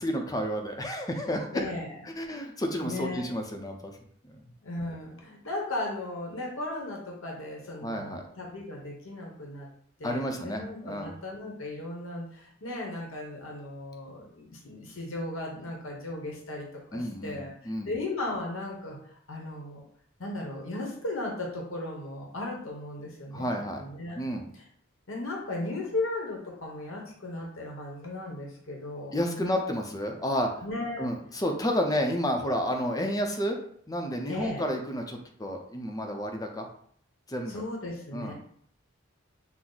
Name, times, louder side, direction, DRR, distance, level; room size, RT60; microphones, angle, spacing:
voice 1, 0.0-1.6 2.2-3.9 4.3-4.4 7.8-8.2 10.0-11.1 16.9-17.9 23.3-23.8 24.2-24.4 29.1-30.5 31.0-33.6 33.9-36.7 37.3-37.6 38.1-38.3, equal, 20° left, 3 dB, 0.5 m, -31 dB
voice 2, 1.5-2.0 2.8-3.3 4.6-9.7 10.0-19.0 19.3-19.8 20.2-24.2 24.5-24.6 25.1-29.6 30.6-31.1 34.3-34.6 37.5-38.3, left 2 dB, 75° left, -1 dB, 1.0 m, -36 dB
6.0 x 2.1 x 3.9 m, 0.63 s
head